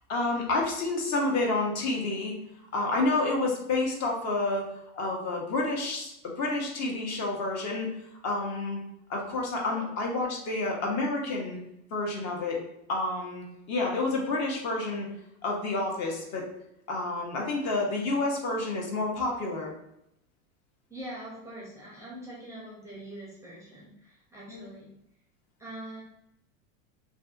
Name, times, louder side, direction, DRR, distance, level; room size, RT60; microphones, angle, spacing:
voice 1, 0.1-2.3 2.7-4.7 4.9-7.9 8.2-8.8 9.1-11.6 11.9-12.6 12.9-15.1 15.4-16.5 16.9-19.7 24.5-24.6, left 2 dB, 40° left, 0 dB, 0.7 m, -29 dB
voice 2, 20.9-25.0 25.6-26.0, right 1 dB, 10° right, -6 dB, 0.5 m, -43 dB
2.5 x 2.5 x 2.3 m, 0.81 s
supercardioid pair, 115°, 39 cm